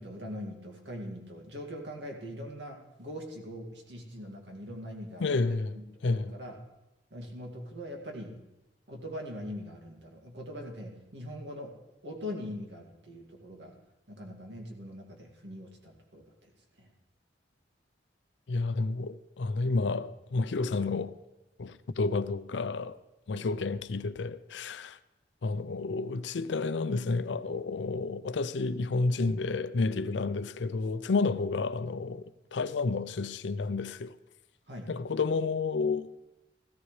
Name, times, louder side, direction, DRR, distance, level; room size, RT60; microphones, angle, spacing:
voice 1, 0.0-6.6 7.1-8.4 8.9-11.8 12.0-13.8 14.1-16.5 16.8-16.9 23.3-23.5 34.7-34.9, equal, 75° right, 2.1 m, -42 dB
voice 2, 5.2-6.3 18.5-21.2 21.6-23.0 23.3-25.0 25.4-32.2 32.5-34.1 34.9-36.2, left 3 dB, 80° left, 0.5 m, -30 dB
16.0 x 14.0 x 3.2 m
head